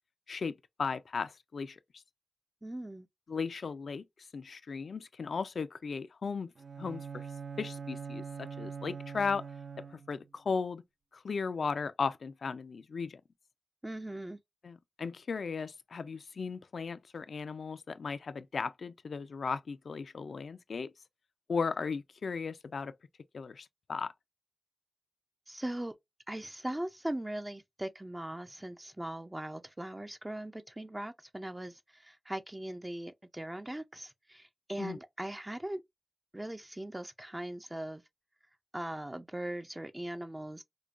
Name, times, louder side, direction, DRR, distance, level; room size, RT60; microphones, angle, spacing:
voice 1, 0.3-1.8 3.3-4.0 4.3-6.5 6.8-7.3 7.6-9.4 9.9-10.8 11.1-13.2 14.6-20.9 21.5-22.9 23.3-24.1 34.8-35.0, left 5 dB, 80° left, 0.3 m, -36 dB
voice 2, 2.6-3.1 13.8-14.4 25.5-25.9 26.3-35.8 36.3-38.0 38.7-40.6, right 1 dB, 20° right, 0.4 m, -40 dB
Bowed string instrument, 6.6-10.3, right 6 dB, 75° right, 0.5 m, -43 dB
4.9 x 2.2 x 2.4 m
cardioid pair, 65°, 0 cm